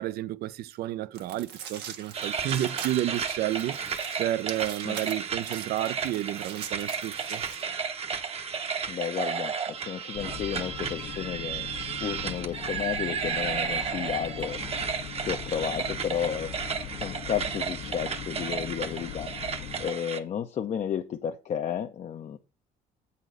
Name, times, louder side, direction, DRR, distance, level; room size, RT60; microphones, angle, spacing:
voice 1, 0.0-3.8 4.2-7.4, right 14 dB, 70° right, 0.5 m, -31 dB
sound 1, 1.1-7.6, right 8 dB, 85° right, 1.4 m, -42 dB
sound 2, 2.1-20.2, right 6 dB, 35° right, 0.8 m, -33 dB
voice 2, 8.9-11.7 12.0-14.6 15.2-22.4, left 9 dB, 45° left, 0.6 m, -33 dB
sound 3, 10.1-19.9, left 9 dB, 80° left, 1.1 m, -40 dB
8.0 x 4.2 x 6.2 m
cardioid pair, 110°, 17 cm